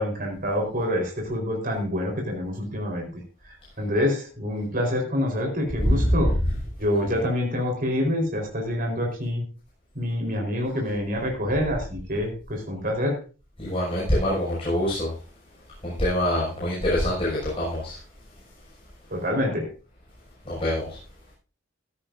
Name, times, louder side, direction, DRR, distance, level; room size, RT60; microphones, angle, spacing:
voice 1, 0.0-3.2 3.8-6.3 6.8-9.4 9.9-13.2 19.1-19.7, left 1 dB, 45° right, 1 dB, 4.2 m, -26 dB
voice 2, 5.8-6.6 7.1-7.2 13.6-15.1 15.8-18.0 20.4-21.0, equal, 30° left, -6 dB, 6.1 m, -24 dB
15.5 x 13.0 x 2.6 m, 0.35 s
head